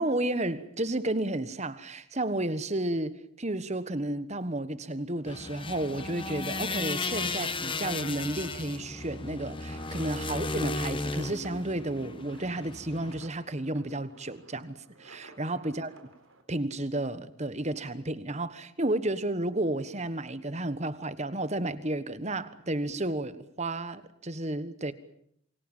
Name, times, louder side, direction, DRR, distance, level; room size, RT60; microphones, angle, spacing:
voice 1, 0.0-15.9 16.5-24.9, right 1 dB, 30° right, 1.3 m, -32 dB
sound 1, 5.2-16.4, right 2 dB, 70° right, 4.2 m, -55 dB
sound 2, 5.3-13.3, left 3 dB, 25° left, 1.2 m, -35 dB
27.5 x 23.5 x 7.3 m
head